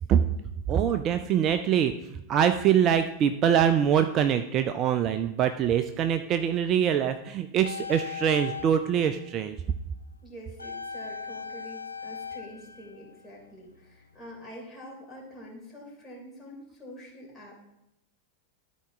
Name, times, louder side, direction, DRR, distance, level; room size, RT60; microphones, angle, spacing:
voice 1, 0.7-9.6, right 9 dB, 35° right, 9 dB, 0.4 m, -24 dB
sound 1, 7.6-9.7 10.6-13.7 14.0-14.1, left 6 dB, 80° left, 0.3 m, -39 dB
voice 2, 10.2-17.5, equal, 15° left, -4 dB, 3.4 m, -46 dB
12.5 x 4.7 x 3.4 m, 0.85 s
figure-of-eight pair, 90°, 0 cm